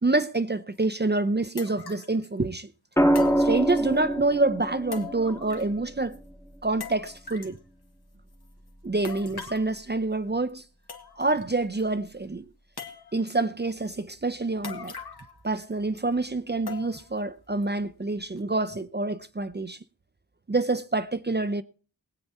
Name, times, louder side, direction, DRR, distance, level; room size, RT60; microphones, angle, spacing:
voice 1, 0.0-2.7 3.4-6.2 6.6-7.6 8.8-10.6 11.2-12.4 13.1-14.9 15.4-19.8 20.5-21.6, right 2 dB, 25° right, 0.7 m, -27 dB
sound 1, 0.8-0.9 1.6-2.2 3.1-4.0 4.9-5.8 6.1-6.2 6.8-7.6 9.0-9.7 10.5-10.6 10.9-11.4 11.8-11.9 12.8-13.4 14.6-15.4 15.7-15.8 16.7-17.2 17.6-17.7 18.4-18.5, left 6 dB, 75° left, 1.9 m, -41 dB
sound 2, 3.0-7.1 8.8-9.2, right 1 dB, 5° left, 1.0 m, -26 dB
20.0 x 8.6 x 4.2 m
wide cardioid pair, 85°, 39 cm